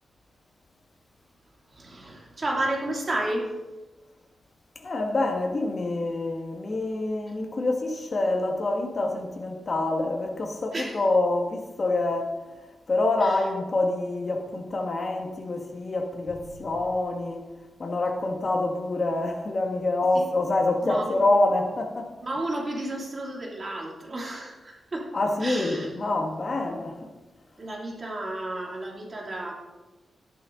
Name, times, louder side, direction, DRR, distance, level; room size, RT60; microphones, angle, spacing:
voice 1, 1.7-3.5 10.7-11.0 13.2-13.5 20.1-20.3 20.8-21.2 22.2-25.1 25.4-26.1 27.6-29.5, right 1 dB, 40° right, -2 dB, 3.0 m, -32 dB
voice 2, 4.8-12.3 12.9-17.4 17.8-22.1 25.1-27.0, left 2 dB, 45° left, 2 dB, 1.9 m, -26 dB
12.5 x 11.0 x 4.0 m, 1.1 s
wide cardioid pair, 100°, 0 cm